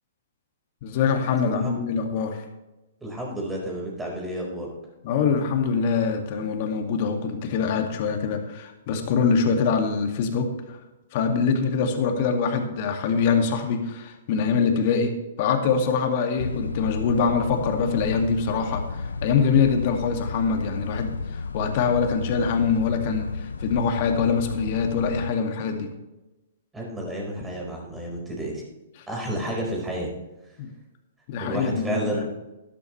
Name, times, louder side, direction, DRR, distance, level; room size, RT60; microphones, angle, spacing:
voice 1, 0.8-2.4 5.0-10.8 11.1-25.9 30.6-30.7 31.3-32.2, left 5 dB, 45° left, 4 dB, 2.2 m, -24 dB
voice 2, 3.0-4.7 26.7-28.6 29.1-30.1 30.4-30.6 31.4-32.3, right 1 dB, 10° right, -1 dB, 4.8 m, -31 dB
sound 1, 16.4-25.3, left 4 dB, 90° left, 0.5 m, -32 dB
12.5 x 12.5 x 3.3 m, 1.0 s
hypercardioid pair, 125°, 0 cm